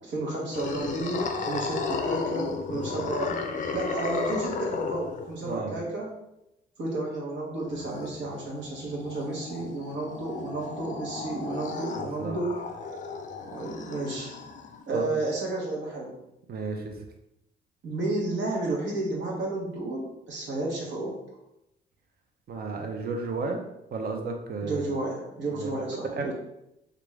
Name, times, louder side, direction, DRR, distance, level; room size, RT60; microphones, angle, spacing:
voice 1, 0.0-3.4 3.7-6.1 6.8-12.5 13.4-14.3 14.9-16.2 17.8-21.2 24.6-26.3, right 2 dB, 65° right, -2 dB, 1.1 m, -32 dB
sound 1, 0.5-5.5 7.7-14.8, left 4 dB, 40° left, 0.5 m, -34 dB
voice 2, 2.7-3.1 5.4-5.8 12.0-12.4 14.9-15.1 16.5-17.0 22.5-23.6 23.9-24.8 25.5-26.3, right 4 dB, 50° right, 4 dB, 0.7 m, -33 dB
3.4 x 2.5 x 3.2 m, 0.86 s
cardioid pair, 90°, 20 cm